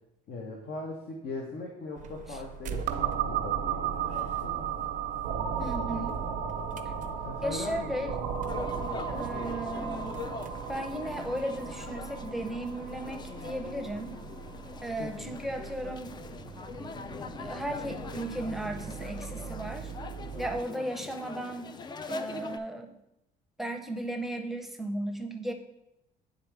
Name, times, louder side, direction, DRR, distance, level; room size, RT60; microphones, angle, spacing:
voice 1, 0.3-4.9 7.1-8.2 15.0-15.4, left 2 dB, 65° left, 0 dB, 1.0 m, -40 dB
sound 1, 2.0-20.6, right 7 dB, 50° right, 0.5 m, -45 dB
Lo-Fi Danger, 2.9-16.4, right 7 dB, 90° right, 0.7 m, -35 dB
voice 2, 5.6-6.2 7.4-8.1 9.1-10.3 10.7-14.2 14.8-16.2 17.4-19.9 20.4-21.7 22.1-22.9 23.6-25.5, right 1 dB, ahead, 5 dB, 0.7 m, -35 dB
sound 2, 8.5-22.6, left 5 dB, 25° left, 0.3 m, -42 dB
9.5 x 3.7 x 3.4 m, 0.87 s
cardioid pair, 110°, 17 cm